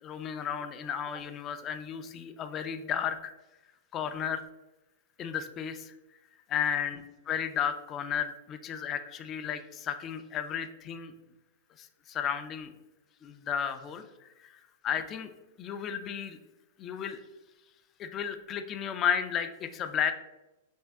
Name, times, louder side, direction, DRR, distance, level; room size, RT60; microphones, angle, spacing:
voice 1, 0.0-3.3 3.9-4.4 5.2-5.9 6.5-11.1 11.8-12.7 13.2-14.0 14.4-15.3 15.6-16.4 16.8-17.2 18.0-20.1, left 8 dB, 25° left, 8 dB, 0.3 m, -33 dB
3.5 x 2.4 x 3.4 m, 1.0 s
hypercardioid pair, 140°, 0 cm